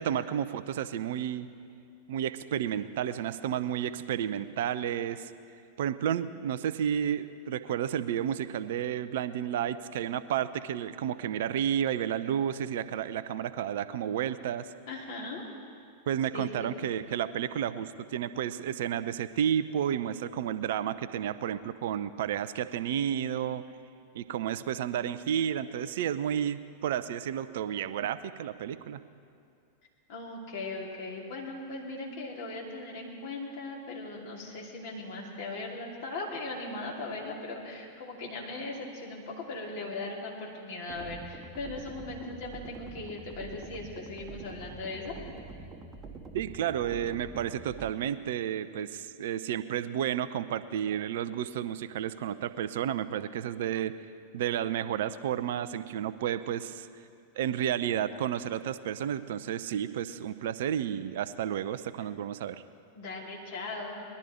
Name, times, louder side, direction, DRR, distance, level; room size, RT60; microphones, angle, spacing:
voice 1, 0.0-1.5 2.1-5.3 5.8-14.7 16.1-23.6 24.1-29.0 46.3-53.9 54.3-56.9 57.4-62.6, right 9 dB, 55° right, 13 dB, 0.5 m, -31 dB
voice 2, 14.9-15.4 16.3-16.7 30.1-45.1 62.9-64.0, left 2 dB, 50° left, -2 dB, 2.8 m, -39 dB
sound 1, 40.9-47.9, right 3 dB, 25° right, 1.0 m, -45 dB
19.5 x 11.5 x 4.4 m, 2.4 s
figure-of-eight pair, 90°, 0 cm